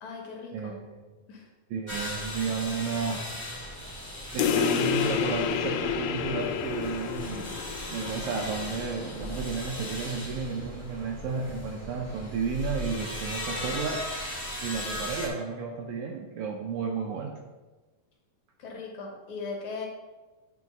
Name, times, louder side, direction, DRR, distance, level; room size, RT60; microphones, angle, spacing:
voice 1, 0.0-0.8 1.3-1.5 18.6-19.9, left 4 dB, 65° left, 0 dB, 2.2 m, -38 dB
voice 2, 0.5-1.2 1.7-3.3 4.3-7.6 7.9-14.0 14.6-17.4, right 5 dB, 75° right, 1 dB, 1.9 m, -32 dB
sound 1, 1.9-15.3, left 1 dB, 15° left, 0.7 m, -38 dB
sound 2, 4.4-9.4, left 8 dB, 85° left, 2.2 m, -30 dB
9.2 x 3.1 x 5.3 m, 1.2 s
omnidirectional pair, 3.9 m